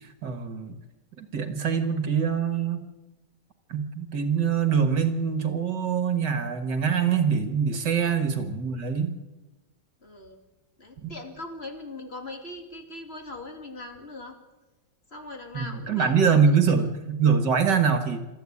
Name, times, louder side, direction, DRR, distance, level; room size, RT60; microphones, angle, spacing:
voice 1, 0.2-0.8 1.2-2.8 3.7-9.1 11.0-11.1 15.5-18.2, right 6 dB, 65° right, 8 dB, 2.1 m, -24 dB
voice 2, 10.0-10.4 10.8-14.4 15.1-16.6, left 2 dB, 30° left, 4 dB, 3.0 m, -40 dB
23.5 x 14.0 x 8.5 m, 1.1 s
omnidirectional pair, 2.1 m